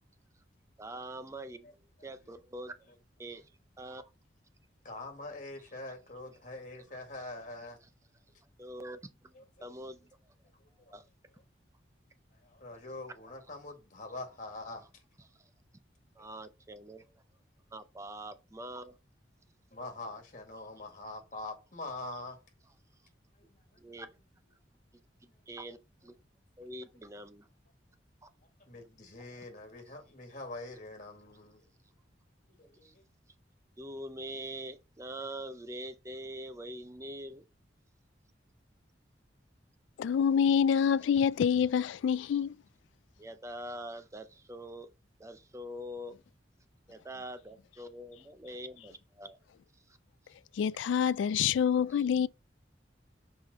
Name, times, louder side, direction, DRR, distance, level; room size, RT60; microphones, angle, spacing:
voice 1, 0.8-1.7 2.0-2.9 3.2-3.5 3.8-4.1 8.6-9.3 9.6-10.1 10.9-11.1 16.2-17.2 17.7-18.9 23.8-24.1 25.2-26.2 26.6-27.5 28.2-28.3 32.8-32.9 33.8-37.4 43.2-44.9 45.2-46.2 46.9-49.4 51.3-51.4 51.9-52.0, right 1 dB, 15° right, 0.5 m, -44 dB
voice 2, 4.8-7.8 9.3-9.4 10.8-10.9 12.4-14.9 16.2-16.4 19.7-22.4 23.4-23.8 28.7-31.6 32.6-33.0, left 2 dB, 45° left, 1.9 m, -44 dB
voice 3, 40.0-42.6 50.6-52.3, left 7 dB, 85° left, 0.3 m, -26 dB
5.9 x 4.9 x 4.1 m
head